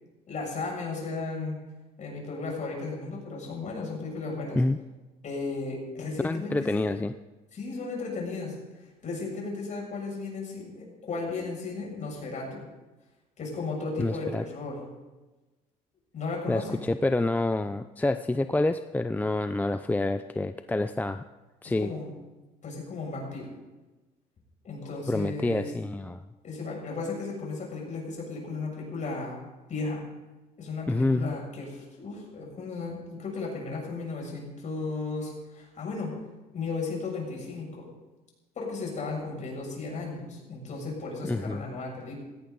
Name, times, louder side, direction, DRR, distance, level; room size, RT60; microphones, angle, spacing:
voice 1, 0.3-1.6 2.0-4.6 5.2-6.9 7.5-12.6 13.4-14.9 16.1-16.8 21.6-22.1 22.6-23.5 24.6-25.7 26.4-30.0 30.6-36.1 36.5-37.9 38.5-42.2, left 3 dB, 45° left, -1 dB, 6.7 m, -35 dB
voice 2, 6.2-7.1 14.0-14.4 16.5-21.2 21.6-21.9 25.1-26.2 30.9-31.3 41.3-41.6, left 2 dB, 10° left, 10 dB, 0.4 m, -27 dB
17.5 x 16.5 x 3.9 m, 1.2 s
cardioid pair, 110°, 17 cm